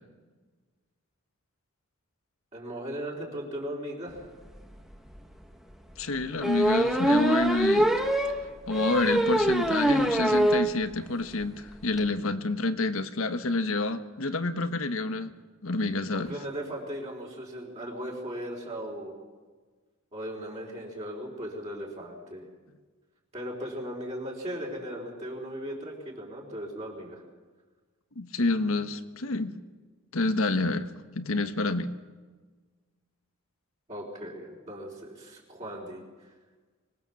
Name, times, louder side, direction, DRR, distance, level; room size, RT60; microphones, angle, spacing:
voice 1, 2.5-4.2 16.1-19.2 20.1-22.4 23.3-27.2 33.9-36.3, equal, 30° right, -3 dB, 4.1 m, -37 dB
sound 1, 4.6-4.7 5.1-5.2 6.4-10.7 11.1-11.2 11.4-11.5 11.7-12.0, right 1 dB, ahead, 1.4 m, -24 dB
voice 2, 6.0-8.1 8.7-15.3 15.6-16.3 28.2-29.6 30.1-30.9 31.1-31.9, left 2 dB, 75° left, 9 dB, 1.3 m, -28 dB
24.5 x 19.0 x 7.2 m, 1.4 s
head